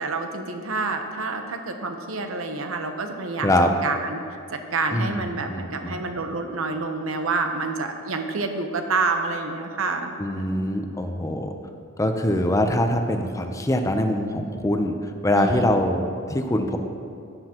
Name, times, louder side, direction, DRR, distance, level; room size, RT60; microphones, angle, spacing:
voice 1, 0.0-3.5 3.8-4.2 4.5-10.7 15.3-15.7, right 3 dB, 80° right, 5 dB, 1.0 m, -28 dB
voice 2, 5.5-6.0 10.2-11.5 12.0-16.8, left 1 dB, 15° left, 5 dB, 0.7 m, -23 dB
13.0 x 9.7 x 3.0 m, 2.6 s
head